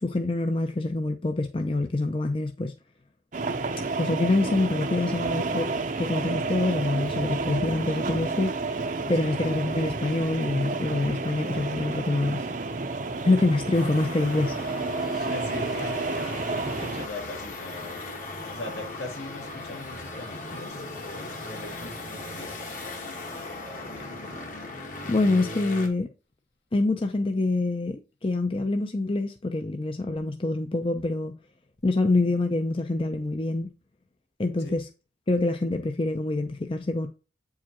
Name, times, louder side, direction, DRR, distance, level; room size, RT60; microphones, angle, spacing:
voice 1, 0.0-2.7 4.0-5.7 6.0-8.5 9.1-12.4 13.2-14.5 25.1-26.1 26.7-31.3 31.8-33.7 34.4-34.9 35.3-37.1, left 2 dB, 30° left, 0.5 m, -26 dB
sound 1, 3.3-17.1, right 3 dB, 45° right, 0.7 m, -30 dB
City Milano traffic whistle moto, 13.7-25.9, left 2 dB, 50° left, 1.4 m, -38 dB
voice 2, 15.1-18.0 18.5-24.2 34.6-34.8, left 2 dB, 75° left, 2.0 m, -41 dB
8.4 x 4.8 x 2.9 m
head